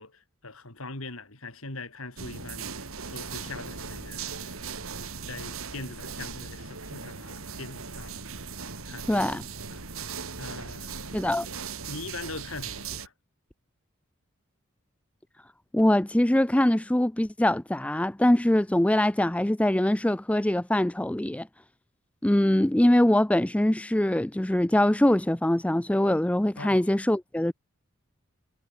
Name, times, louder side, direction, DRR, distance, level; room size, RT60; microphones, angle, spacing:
voice 1, 0.0-4.6 5.3-8.2 8.8-9.1 9.7-9.9 10.4-11.2 11.9-13.1 26.6-26.8, left 3 dB, 70° left, 4.3 m, -41 dB
sound 1, 2.2-13.1, right 5 dB, 70° right, 2.9 m, -38 dB
voice 2, 9.1-9.4 11.1-11.5 15.7-21.5 22.2-27.5, left 1 dB, 5° left, 0.4 m, -23 dB
head